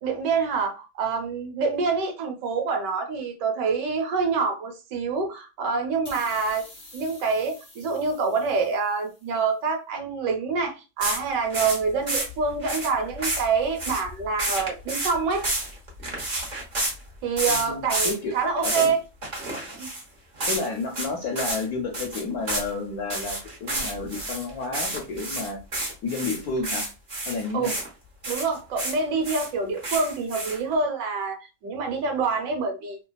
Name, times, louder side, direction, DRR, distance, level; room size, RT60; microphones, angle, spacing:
voice 1, 0.0-6.7 6.9-15.4 17.2-19.0 19.8-19.9 27.5-27.7 28.3-33.0, right 4 dB, 80° right, 1.4 m, -26 dB
sound 1, 6.0-9.4, left 1 dB, 40° left, 0.3 m, -48 dB
sound 2, 11.0-16.9 17.4-18.2 18.4-18.9 19.2-20.0 20.4-20.7 20.9-21.1 21.4-21.6 21.9-22.7 23.1-27.9 28.2-29.0 29.2-30.7, right 1 dB, 35° right, 0.7 m, -30 dB
voice 2, 17.5-18.3 18.6-18.9 20.5-25.6 26.0-26.9 27.2-27.7, left 3 dB, 70° left, 1.0 m, -31 dB
3.3 x 2.2 x 2.2 m
omnidirectional pair, 1.9 m